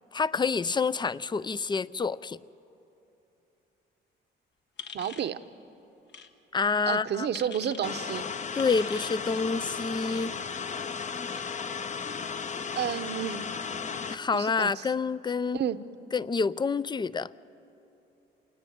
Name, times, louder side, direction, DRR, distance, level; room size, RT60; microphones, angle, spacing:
voice 1, 0.1-2.4 6.5-7.3 8.6-10.3 14.1-15.6 16.1-17.3, left 4 dB, 20° left, 18 dB, 0.5 m, -28 dB
sound 1, 4.8-5.3 6.1-6.3 7.3-7.8 8.6-9.2, left 6 dB, 60° left, 1.4 m, -43 dB
voice 2, 4.9-5.4 6.9-8.3 12.8-13.5 14.3-14.9 15.5-15.8, right 9 dB, 60° right, 11 dB, 0.9 m, -31 dB
sound 2, 7.8-14.1, left 6 dB, 35° left, 0.9 m, -35 dB
27.5 x 18.0 x 9.4 m, 3.0 s
cardioid pair, 90°, 20 cm